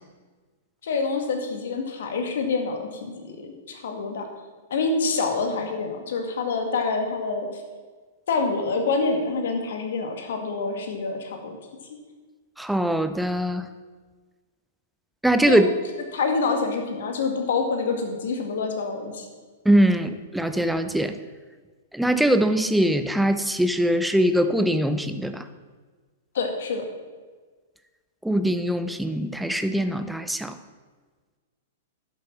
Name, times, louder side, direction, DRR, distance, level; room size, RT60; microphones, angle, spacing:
voice 1, 0.8-4.3 4.7-7.6 8.3-11.6 15.5-15.6 16.1-19.3 26.3-26.8, left 4 dB, 65° left, 4 dB, 2.0 m, -26 dB
voice 2, 12.6-13.7 15.2-15.7 19.6-21.2 21.9-25.4 28.2-30.6, right 1 dB, 5° right, 9 dB, 0.6 m, -22 dB
11.5 x 7.5 x 5.8 m, 1.4 s
figure-of-eight pair, 105°, 0 cm